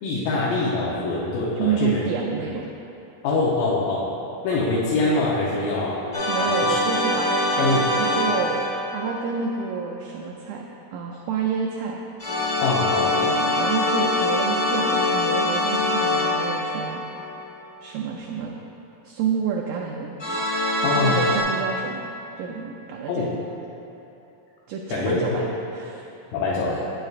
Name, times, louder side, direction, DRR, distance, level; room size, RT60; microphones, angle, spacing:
voice 1, 0.0-2.0 3.2-4.1 4.4-6.0 6.4-6.8 7.6-7.9 12.6-13.2 20.8-21.2 23.1-23.3 24.9-25.2 26.3-26.8, left 3 dB, 80° left, -6 dB, 2.4 m, -24 dB
voice 2, 1.6-2.7 6.3-8.6 8.9-10.7 10.9-12.0 12.9-17.0 17.8-18.6 19.1-20.2 20.8-22.0 22.4-23.3 24.7-25.5 25.7-26.1, right 6 dB, 80° right, -1 dB, 1.8 m, -29 dB
sound 1, 6.1-9.5 12.2-17.6 20.2-21.4, left 1 dB, 40° left, 1.1 m, -24 dB
9.2 x 7.6 x 2.4 m, 3.0 s
omnidirectional pair, 3.9 m